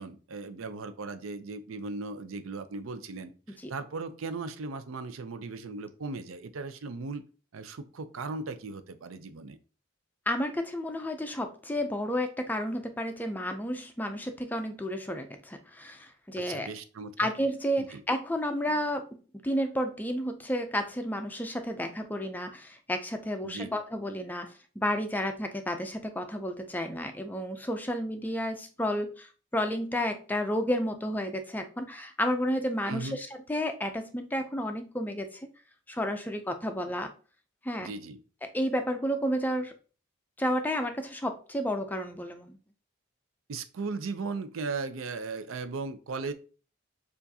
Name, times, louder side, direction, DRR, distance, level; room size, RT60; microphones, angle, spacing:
voice 1, 0.0-7.2 7.5-9.6 16.3-17.2 17.8-18.0 23.4-23.7 32.9-33.2 37.8-38.2 43.5-46.3, right 3 dB, 85° right, 10 dB, 0.5 m, -37 dB
voice 2, 10.3-16.7 17.2-35.5 35.9-37.1 37.6-37.9 38.4-39.7 40.4-42.6, equal, 10° left, 6 dB, 0.4 m, -31 dB
6.8 x 2.5 x 2.7 m, 0.38 s
head